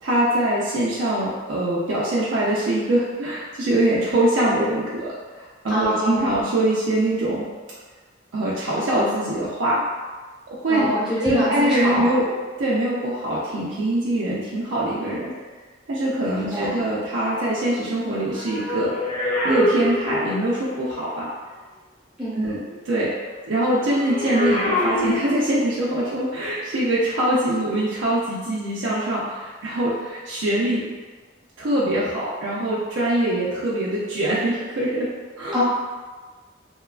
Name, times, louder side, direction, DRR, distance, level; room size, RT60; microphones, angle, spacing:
voice 1, 0.0-7.5 8.3-9.8 10.6-10.9 11.2-12.3 12.6-15.3 15.9-18.9 19.4-21.3 22.3-23.1 23.4-30.9 31.6-35.1 35.4-35.6, right 1 dB, 85° right, -7 dB, 0.5 m, -23 dB
voice 2, 5.7-6.3 10.7-12.2 16.3-16.8 22.2-22.4 35.5-35.6, equal, 5° right, -12 dB, 0.9 m, -24 dB
sound 1, 18.0-20.8 23.9-25.8 26.7-26.9, left 1 dB, 40° left, 0.4 m, -26 dB
2.8 x 2.2 x 2.3 m, 1.4 s
head